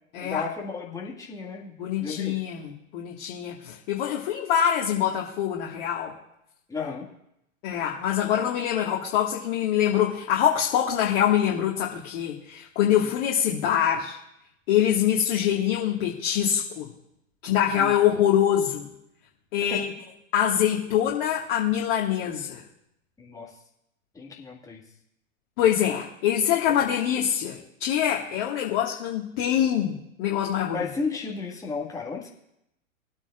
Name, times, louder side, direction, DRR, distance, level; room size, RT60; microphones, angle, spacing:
voice 1, 0.2-2.3 6.7-7.1 17.8-17.9 19.7-19.9 23.2-23.6 24.1-24.8 26.7-26.8 30.7-32.3, left 4 dB, 10° left, -2 dB, 1.9 m, -33 dB
voice 2, 1.8-6.2 7.6-14.2 14.7-16.9 17.4-18.9 19.5-19.8 20.3-22.6 25.6-30.8, left 10 dB, 45° left, -2 dB, 1.9 m, -24 dB
24.0 x 8.8 x 2.5 m, 0.83 s
figure-of-eight pair, 110°, 41 cm